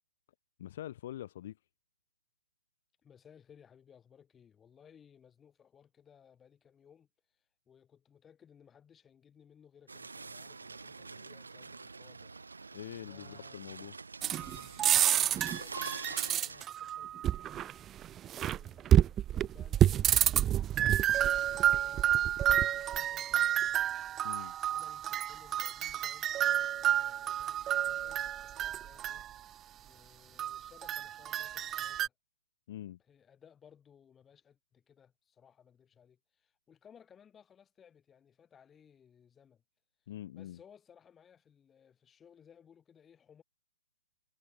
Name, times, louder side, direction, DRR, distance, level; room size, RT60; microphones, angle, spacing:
voice 1, 0.6-1.6 12.7-13.9 24.2-24.5 32.7-33.0 40.1-40.6, left 12 dB, 40° left, 1.4 m, -44 dB
voice 2, 3.0-12.4 12.7-13.9 15.1-24.0 24.7-29.3 29.8-32.1 33.0-39.6 40.3-43.4, left 8 dB, 15° left, 5.6 m, -61 dB
sound 1, 9.9-16.6, right 4 dB, 70° right, 3.0 m, -46 dB
sound 2, 14.2-29.3 30.4-32.1, right 11 dB, 15° right, 0.5 m, -29 dB
figure-of-eight pair, 125°, 0 cm